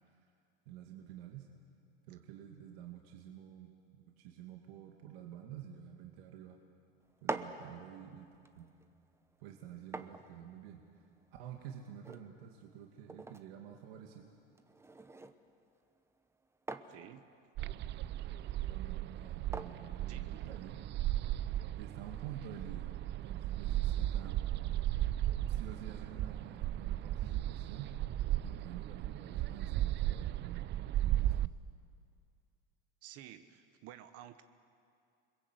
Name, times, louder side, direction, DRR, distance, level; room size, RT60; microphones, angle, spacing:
voice 1, 0.7-1.5 2.1-6.6 7.2-8.7 9.4-10.8 11.4-14.3 18.7-21.3 21.7-22.9 23.2-24.4 25.5-27.9 28.4-30.7 31.0-31.6, right 10 dB, 80° right, 2 dB, 2.2 m, -49 dB
sound 1, 7.0-20.9, right 3 dB, 10° right, 1.0 m, -48 dB
voice 2, 16.9-17.3 20.1-20.4 33.0-34.4, right 12 dB, 55° right, 10 dB, 1.2 m, -52 dB
sound 2, 17.6-31.5, right 13 dB, 40° right, 0.5 m, -36 dB
29.0 x 21.5 x 8.1 m, 2.5 s
supercardioid pair, 125°, 30 cm